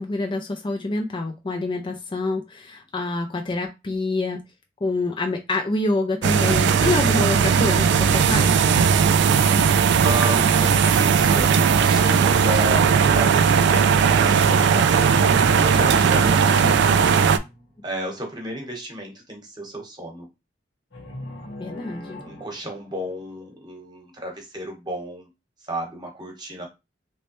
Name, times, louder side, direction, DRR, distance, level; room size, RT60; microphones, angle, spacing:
voice 1, 0.0-4.4 4.8-8.7 21.6-22.2, left 2 dB, 25° left, 4 dB, 0.4 m, -26 dB
sound 1, 6.2-17.4, right 6 dB, 60° right, 0.3 m, -18 dB
voice 2, 10.0-15.1 15.5-17.0 17.8-20.3 22.2-25.3 25.6-26.7, right 1 dB, 20° right, 1 dB, 1.1 m, -33 dB
sound 2, 12.2-18.0 20.9-23.3, equal, 80° left, 1.5 m, -39 dB
3.1 x 3.1 x 3.0 m, 0.24 s
head